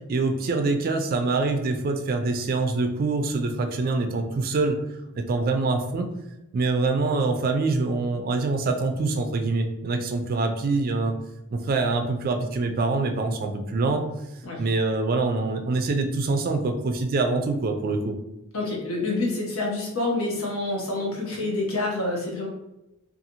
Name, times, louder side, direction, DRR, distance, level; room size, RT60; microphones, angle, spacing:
voice 1, 0.1-4.8 5.1-6.1 6.5-11.1 11.5-14.1 14.6-18.2, right 3 dB, 45° right, 5 dB, 0.3 m, -25 dB
voice 2, 18.5-22.5, left 2 dB, 80° left, -2 dB, 0.8 m, -27 dB
2.6 x 2.3 x 2.8 m, 0.92 s
head